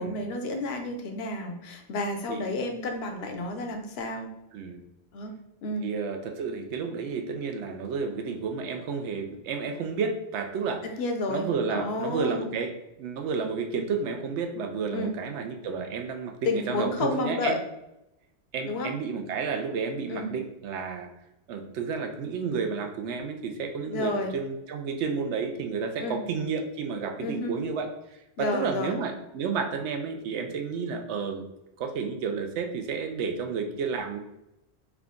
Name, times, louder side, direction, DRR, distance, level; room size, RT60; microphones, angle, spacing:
voice 1, 0.0-4.3 5.1-5.3 5.6-5.9 11.0-12.4 14.9-15.2 16.5-17.6 18.7-18.9 20.1-20.3 23.9-24.3 26.0-26.2 27.2-27.5 28.4-29.0, left 2 dB, 70° left, 4 dB, 0.8 m, -31 dB
voice 2, 5.8-10.8 11.3-12.7 13.0-17.6 18.5-21.1 21.5-27.9 28.4-31.4 31.8-34.2, right 5 dB, 90° right, 5 dB, 0.9 m, -31 dB
3.5 x 2.3 x 3.6 m, 0.89 s
omnidirectional pair, 1.1 m